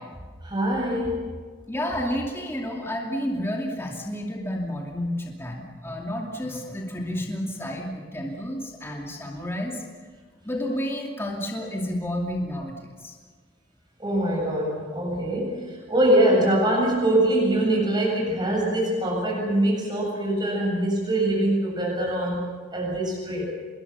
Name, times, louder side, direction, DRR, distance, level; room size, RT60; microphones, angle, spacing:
voice 1, 0.4-1.3 14.0-23.5, right 1 dB, 20° right, -2 dB, 7.7 m, -23 dB
voice 2, 1.7-9.8 10.4-13.1, equal, 15° left, -1 dB, 2.7 m, -30 dB
26.5 x 21.5 x 7.0 m, 1.5 s
head